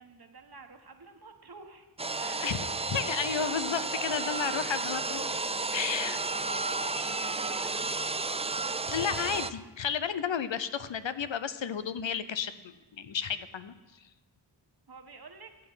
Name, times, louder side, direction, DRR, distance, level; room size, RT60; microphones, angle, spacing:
voice 1, 0.0-1.9 2.2-2.6 5.4-6.1 6.5-7.7 14.9-15.5, right 4 dB, 55° right, 6 dB, 1.4 m, -50 dB
sound 1, 2.0-9.5, right 3 dB, 15° right, 0.4 m, -32 dB
voice 2, 2.4-5.3 5.7-6.2 8.9-13.7, left 7 dB, 75° left, 12 dB, 0.7 m, -32 dB
14.5 x 8.0 x 5.6 m, 1.2 s
wide cardioid pair, 60°, 45 cm